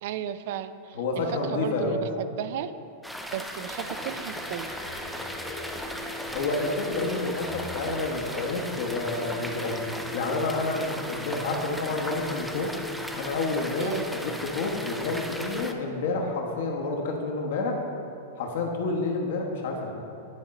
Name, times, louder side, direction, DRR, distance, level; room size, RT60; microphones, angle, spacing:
voice 1, 0.0-2.7 3.3-4.7 13.8-14.2, right 10 dB, 65° right, 13 dB, 0.3 m, -34 dB
voice 2, 0.9-2.0 6.3-9.8 10.1-12.7 13.1-17.8 18.4-19.9, left 3 dB, 70° left, 0 dB, 1.1 m, -29 dB
sound 1, 3.0-15.7, equal, ahead, 0.4 m, -37 dB
sound 2, 3.6-13.4, left 1 dB, 30° right, 1.2 m, -42 dB
sound 3, 4.5-9.3, left 2 dB, 30° left, 1.1 m, -45 dB
9.8 x 3.8 x 4.2 m, 2.7 s
hypercardioid pair, 120°, 0 cm